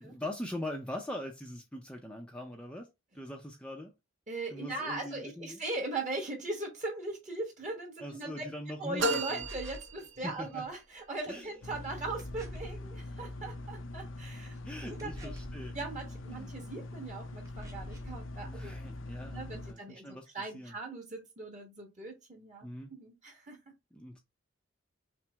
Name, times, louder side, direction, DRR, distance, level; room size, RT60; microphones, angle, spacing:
voice 1, 0.0-2.9 3.1-3.9 4.5-5.6 8.0-9.5 10.2-10.6 11.3-11.5 14.6-15.7 16.3-16.6 18.4-20.3 20.5-20.7 22.6-22.9 23.9-24.2, left 1 dB, 5° left, 0.5 m, -42 dB
voice 2, 4.3-8.5 8.8-15.3 15.7-18.7 19.3-23.6, right 2 dB, 35° right, 1.3 m, -40 dB
sound 1, 9.0-10.7, right 1 dB, 60° right, 0.7 m, -34 dB
sound 2, 9.4-10.0 12.2-12.8 15.0-15.7 17.5-18.2, equal, 15° right, 1.0 m, -46 dB
sound 3, 11.6-19.7, left 2 dB, 60° left, 0.5 m, -43 dB
5.9 x 2.0 x 3.4 m
head